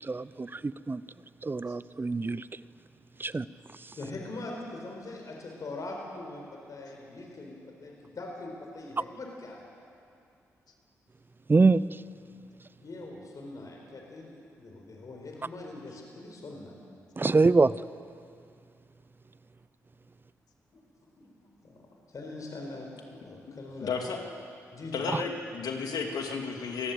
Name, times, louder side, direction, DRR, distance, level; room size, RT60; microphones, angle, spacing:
voice 1, 0.0-1.0 1.4-2.4 3.2-3.4 11.5-11.8 17.2-17.7 25.1-25.2, right 3 dB, 30° right, 18 dB, 0.6 m, -24 dB
voice 2, 3.9-9.6 12.8-14.3 14.6-16.7 20.7-23.9 24.7-25.1, left 2 dB, 60° left, 0 dB, 4.5 m, -42 dB
voice 3, 23.8-24.2 24.9-26.9, left 5 dB, 75° left, 2 dB, 2.6 m, -33 dB
23.0 x 15.0 x 8.0 m, 2.4 s
supercardioid pair, 40°, 7 cm